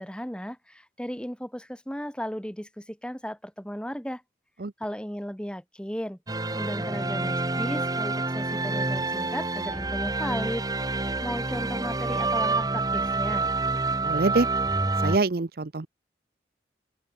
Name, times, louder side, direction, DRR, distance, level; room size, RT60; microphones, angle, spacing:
voice 1, 0.0-4.2 4.8-6.2 6.5-10.6 11.0-13.5, equal, 5° left, 2.2 m, -35 dB
sound 1, 6.3-15.2, right 3 dB, 20° right, 1.7 m, -27 dB
voice 2, 14.0-14.5 15.0-15.9, right 3 dB, 55° right, 0.7 m, -25 dB
open air
head